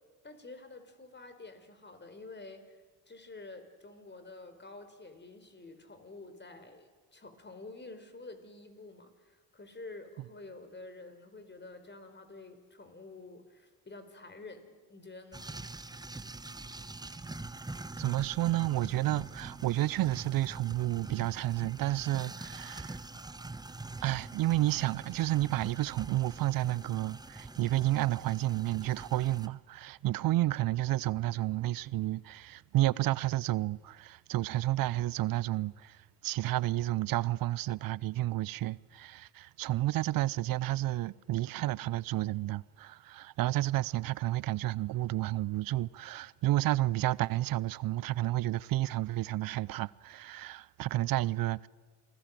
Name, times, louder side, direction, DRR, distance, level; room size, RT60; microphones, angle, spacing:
voice 1, 0.2-15.5, left 3 dB, 25° left, 4.3 m, -49 dB
sound 1, 15.3-29.5, right 2 dB, 10° right, 1.0 m, -44 dB
voice 2, 18.0-23.0 24.0-51.7, right 16 dB, 50° right, 0.6 m, -31 dB
28.5 x 19.5 x 7.6 m
hypercardioid pair, 60°, 46 cm